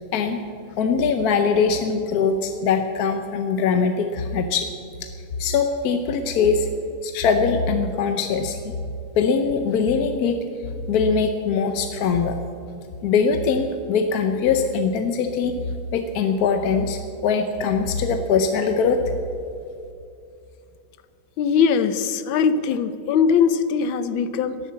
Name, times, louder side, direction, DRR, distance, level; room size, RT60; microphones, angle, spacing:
voice 1, 0.8-4.7 5.0-5.1 5.4-6.7 7.0-8.7 9.2-10.4 10.9-12.4 13.0-15.5 15.9-19.0, left 5 dB, 60° left, 6 dB, 1.1 m, -22 dB
voice 2, 21.4-24.6, left 6 dB, 85° left, 12 dB, 1.5 m, -21 dB
13.0 x 11.0 x 7.6 m, 2.6 s
omnidirectional pair, 2.1 m